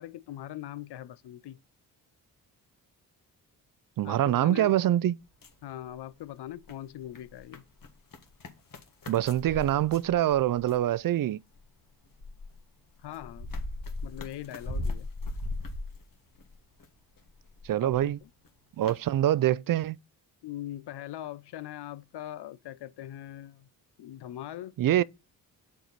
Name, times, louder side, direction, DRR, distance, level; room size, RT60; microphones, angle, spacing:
voice 1, 0.0-1.6 4.0-4.7 5.6-7.6 13.0-13.5 14.0-15.1 17.8-18.3 20.4-23.7 24.0-25.0, left 12 dB, 70° left, 0.6 m, -41 dB
voice 2, 4.0-5.2 9.1-11.4 17.6-18.2 18.8-20.0 24.8-25.0, right 12 dB, 50° right, 0.5 m, -25 dB
sound 1, 5.2-6.2 6.5-10.9 11.5-16.9 17.2-18.1 18.4-18.5 18.8-19.0, left 2 dB, 50° left, 1.7 m, -38 dB
6.5 x 4.8 x 4.0 m
supercardioid pair, 55°, 43 cm